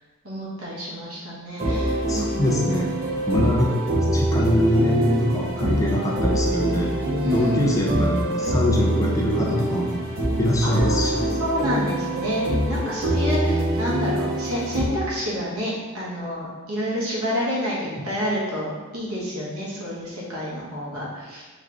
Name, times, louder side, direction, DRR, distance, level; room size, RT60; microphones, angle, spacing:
voice 1, 0.2-2.4 7.2-7.6 10.6-21.4, equal, 80° right, -6 dB, 1.3 m, -29 dB
sound 1, 1.6-14.8, right 1 dB, 45° right, 0.9 m, -25 dB
voice 2, 2.1-3.0 3.3-7.0 7.3-10.0 10.4-11.2 18.0-18.1 19.2-19.3, equal, 15° left, -2 dB, 0.5 m, -23 dB
3.5 x 3.2 x 3.7 m, 1.4 s
head